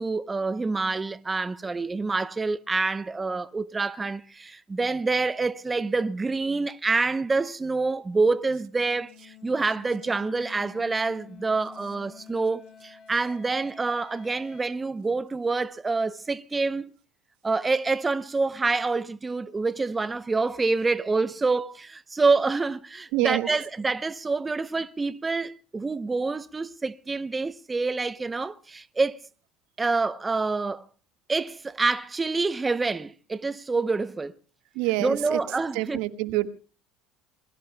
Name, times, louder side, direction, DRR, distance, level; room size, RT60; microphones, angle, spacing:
voice 1, 0.0-16.9 17.4-29.2 29.8-30.8 31.3-34.4 35.0-36.0, right 3 dB, 20° right, 0.7 m, -27 dB
sound 1, 8.3-14.6, left 9 dB, 30° left, 3.8 m, -50 dB
voice 2, 23.1-23.5 34.7-35.4 35.7-36.5, right 18 dB, 75° right, 1.6 m, -26 dB
27.5 x 22.0 x 2.2 m
supercardioid pair, 105°, 0 cm